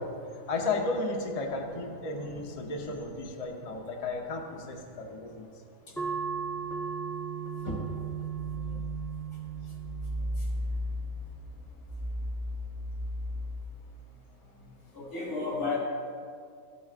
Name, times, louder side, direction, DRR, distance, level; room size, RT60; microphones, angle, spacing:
voice 1, 0.2-5.5, left 3 dB, 30° left, 1 dB, 0.7 m, -34 dB
sound 1, 6.0-11.1, right 7 dB, 5° left, 0.4 m, -36 dB
sound 2, 8.1-13.7, left 1 dB, 90° right, 2.1 m, -36 dB
voice 2, 14.9-15.8, left 3 dB, 85° left, -3 dB, 2.9 m, -32 dB
14.5 x 8.3 x 2.5 m, 2.2 s
omnidirectional pair, 1.5 m